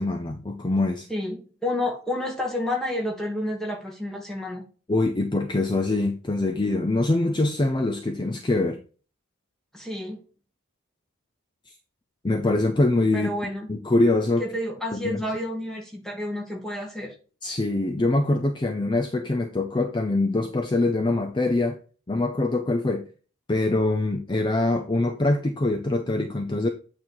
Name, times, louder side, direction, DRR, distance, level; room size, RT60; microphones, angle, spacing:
voice 1, 0.0-1.1 4.9-8.8 12.2-13.3 13.7-14.4 14.9-15.2 17.4-21.8 22.1-23.0 23.5-26.7, left 2 dB, 20° left, 0.5 m, -24 dB
voice 2, 1.1-4.6 9.7-10.2 13.1-13.7 14.4-17.1, left 1 dB, ahead, 1.5 m, -30 dB
8.7 x 3.0 x 5.5 m
head